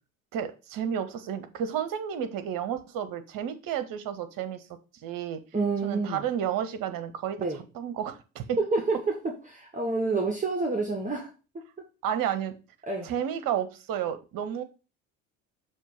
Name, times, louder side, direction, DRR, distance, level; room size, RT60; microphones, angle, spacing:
voice 1, 0.3-4.6 5.0-5.4 5.8-7.4 7.7-8.6 12.0-12.5 13.0-14.6, right 9 dB, 50° right, 9 dB, 1.1 m, -31 dB
voice 2, 5.5-6.2 7.4-7.6 8.6-9.1 9.5-11.3 11.5-11.6 12.9-13.1, right 3 dB, 20° right, 1 dB, 1.4 m, -28 dB
6.5 x 3.1 x 5.9 m, 0.32 s
hypercardioid pair, 60°, 42 cm